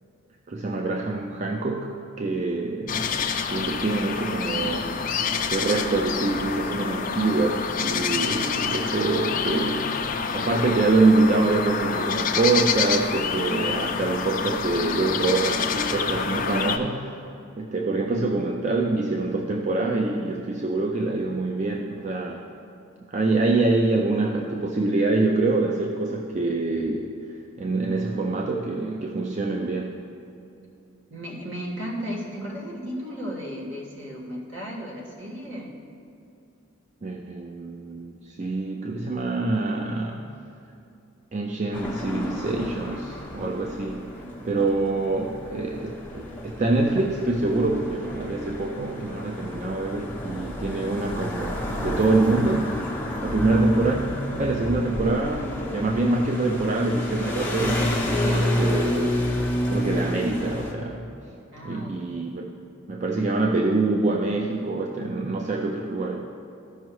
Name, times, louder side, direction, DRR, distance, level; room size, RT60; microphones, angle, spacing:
voice 1, 0.5-3.2 3.5-5.0 5.5-10.0 10.3-17.2 17.6-22.4 23.1-27.1 27.6-30.0 37.0-40.2 41.3-44.1 44.4-52.8 53.2-54.0 54.4-59.3 59.7-61.1 61.6-62.5 62.9-66.3, right 3 dB, 35° right, 1 dB, 0.4 m, -25 dB
sound 1, 2.9-16.8, left 6 dB, 40° left, 0.4 m, -27 dB
voice 2, 31.1-35.7 61.5-62.2, equal, 60° right, -3 dB, 1.6 m, -35 dB
sound 2, 41.7-60.7, left 1 dB, 10° left, 0.8 m, -30 dB
14.0 x 5.4 x 3.1 m, 2.7 s
head